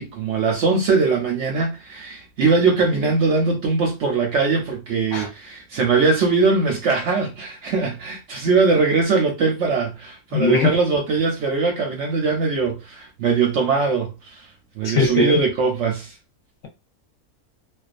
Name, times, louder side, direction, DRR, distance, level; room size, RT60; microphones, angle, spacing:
voice 1, 0.0-14.4 14.8-16.1, right 4 dB, 65° right, 0.7 m, -21 dB
voice 2, 10.3-10.7 15.0-15.4, left 4 dB, 65° left, 0.9 m, -19 dB
2.3 x 2.3 x 2.4 m
omnidirectional pair, 1.6 m